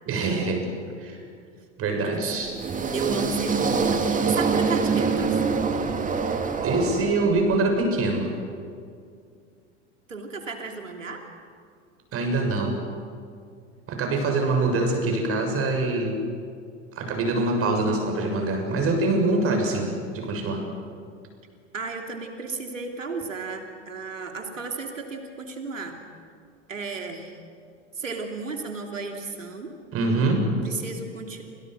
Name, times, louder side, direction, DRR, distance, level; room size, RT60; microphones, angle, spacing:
voice 1, 0.0-0.6 1.0-1.2 1.8-2.6 6.2-6.4 6.6-8.3 12.1-12.8 13.9-16.2 16.9-20.6 29.9-30.5, right 2 dB, 35° right, 3 dB, 7.0 m, -24 dB
sound 1, 2.4-7.6, right 5 dB, 20° right, 2.5 m, -25 dB
voice 2, 2.9-5.4 10.1-11.2 21.7-26.0 26.7-27.4 27.9-29.7 30.6-31.4, right 4 dB, 85° right, 3 dB, 3.0 m, -34 dB
29.0 x 27.5 x 6.3 m, 2.3 s
figure-of-eight pair, 85°, 37 cm